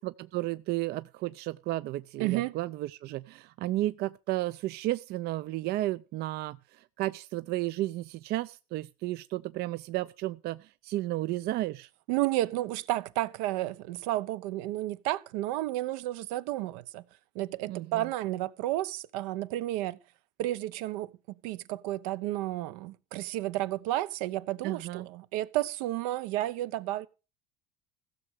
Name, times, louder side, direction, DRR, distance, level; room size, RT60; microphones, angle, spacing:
voice 1, 0.0-11.9 17.7-18.1 24.6-25.1, right 16 dB, 55° right, 0.5 m, -33 dB
voice 2, 2.2-2.5 12.1-17.0 17.3-20.0 20.4-21.1 21.4-27.1, right 15 dB, 80° right, 0.9 m, -32 dB
15.5 x 6.5 x 6.4 m
supercardioid pair, 90°, 19 cm